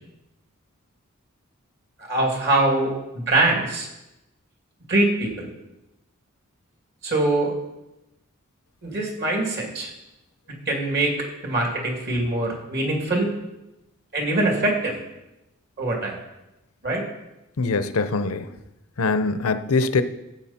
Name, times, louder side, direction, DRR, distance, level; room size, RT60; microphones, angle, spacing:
voice 1, 2.1-3.9 4.9-5.5 7.0-7.5 8.8-9.9 10.7-11.1 11.4-13.3 14.1-15.0 15.8-16.1 16.8-17.0, right 2 dB, 50° right, 0 dB, 2.6 m, -23 dB
voice 2, 17.6-18.5 19.0-20.0, left 3 dB, 80° left, 11 dB, 0.7 m, -22 dB
13.0 x 7.9 x 4.3 m, 0.95 s
head